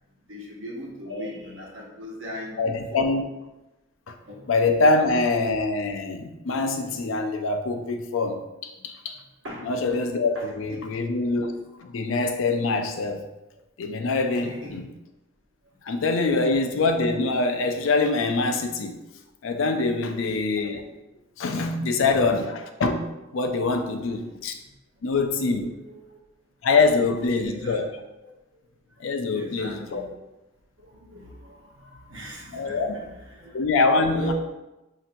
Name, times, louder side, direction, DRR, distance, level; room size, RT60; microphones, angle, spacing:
voice 1, 0.3-3.1 4.2-4.4 9.4-9.8 10.3-10.8 12.0-12.1 14.4-14.8 15.9-16.0 21.8-22.0 24.2-24.4 25.1-26.2 27.3-27.8 29.0-30.2 30.8-33.6 34.1-34.3, equal, 70° right, -2 dB, 1.0 m, -40 dB
voice 2, 2.6-3.2 4.1-4.2 4.5-9.2 9.6-11.5 11.8-13.3 13.8-14.9 15.8-19.0 19.4-20.8 21.4-23.0 23.3-24.5 25.0-25.7 26.6-27.8 29.0-30.0 32.5-33.0 33.5-34.3, left 3 dB, 75° left, 5 dB, 0.4 m, -24 dB
5.7 x 2.8 x 2.5 m, 0.99 s
head